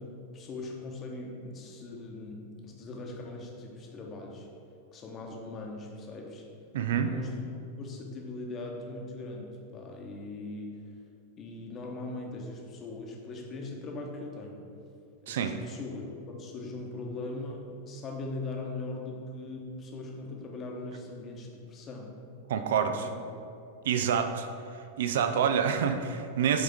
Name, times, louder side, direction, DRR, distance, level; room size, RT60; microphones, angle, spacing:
voice 1, 0.0-4.5 4.9-6.4 6.9-10.8 11.4-14.6 15.2-22.4 22.9-23.2, left 2 dB, 30° left, 0 dB, 1.0 m, -40 dB
voice 2, 6.7-7.1 15.3-15.5 22.5-23.1 23.8-24.5 24.7-26.6, right 7 dB, 60° right, 8 dB, 0.4 m, -27 dB
8.5 x 3.7 x 3.5 m, 2.5 s
figure-of-eight pair, 90°, 0 cm